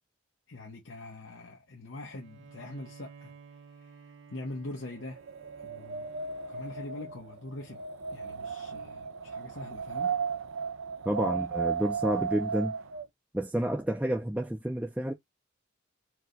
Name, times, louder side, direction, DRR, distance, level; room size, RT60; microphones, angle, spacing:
voice 1, 0.5-3.3 3.8-4.0 4.3-5.2 5.6-6.1 6.5-7.8 8.1-10.1, left 2 dB, 80° left, 1.0 m, -43 dB
Bowed string instrument, 2.0-7.5, right 5 dB, 70° right, 1.0 m, -54 dB
Wind, 5.1-13.1, right 6 dB, 90° right, 0.5 m, -35 dB
voice 2, 11.1-12.7 13.3-15.1, right 1 dB, 5° right, 0.5 m, -30 dB
4.7 x 2.2 x 3.8 m
head